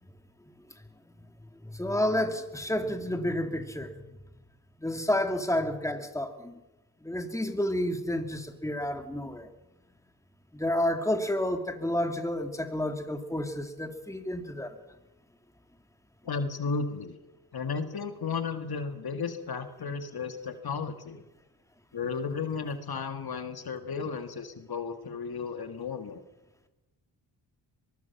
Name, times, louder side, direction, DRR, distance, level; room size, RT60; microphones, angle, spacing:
voice 1, 1.8-4.0 4.8-6.5 7.0-9.5 10.5-14.7, left 1 dB, 5° left, 6 dB, 2.6 m, -30 dB
voice 2, 16.2-17.2 17.5-21.2 21.9-26.2, left 5 dB, 55° left, 8 dB, 1.9 m, -34 dB
23.5 x 21.5 x 5.9 m, 1.0 s
cardioid pair, 70°, 44 cm